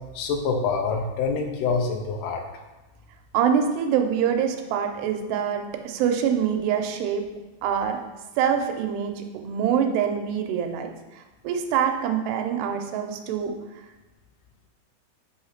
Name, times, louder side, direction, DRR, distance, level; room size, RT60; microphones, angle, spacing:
voice 1, 0.2-2.4, left 5 dB, 85° left, 3 dB, 2.7 m, -26 dB
voice 2, 3.3-7.3 7.6-8.0 8.4-10.9 11.4-13.5, right 8 dB, 85° right, 4 dB, 2.8 m, -25 dB
8.3 x 3.2 x 5.7 m, 1.1 s
omnidirectional pair, 4.6 m